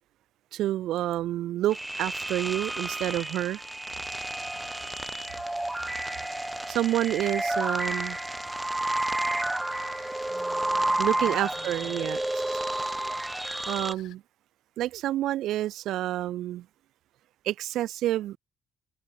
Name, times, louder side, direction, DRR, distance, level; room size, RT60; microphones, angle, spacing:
voice 1, 0.5-3.6 6.7-8.2 11.0-12.2 13.7-14.2 14.8-16.6 17.4-18.4, right 13 dB, 85° right, 0.9 m, -28 dB
sound 1, 1.7-13.9, right 1 dB, 10° right, 1.2 m, -31 dB
sound 2, 4.1-14.2, left 14 dB, 85° left, 2.4 m, -53 dB
voice 2, 10.3-12.6, left 1 dB, 10° left, 5.5 m, -52 dB
cardioid pair, 90°, 0 cm